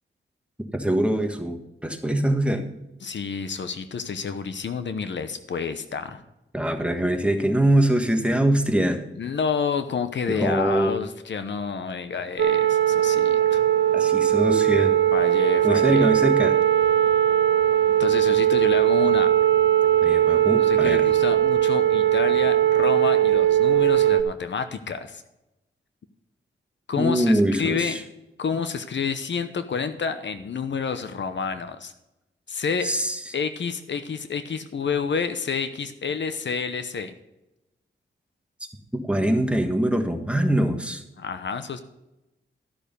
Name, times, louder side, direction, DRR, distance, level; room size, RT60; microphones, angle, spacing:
voice 1, 0.7-2.6 6.5-9.0 10.3-10.9 13.9-14.9 15.6-16.5 20.0-21.1 27.0-28.0 32.8-33.2 38.9-41.0, right 1 dB, 5° right, 4 dB, 1.5 m, -23 dB
voice 2, 3.0-6.2 9.2-13.6 15.1-16.1 17.9-19.3 20.6-25.2 26.9-28.0 28.4-31.9 32.5-32.9 33.3-37.1 41.2-41.8, left 6 dB, 65° left, 10 dB, 0.9 m, -29 dB
sound 1, 12.4-24.2, right 11 dB, 65° right, 0.7 m, -19 dB
12.5 x 6.6 x 5.3 m, 0.93 s
wide cardioid pair, 95°, 20 cm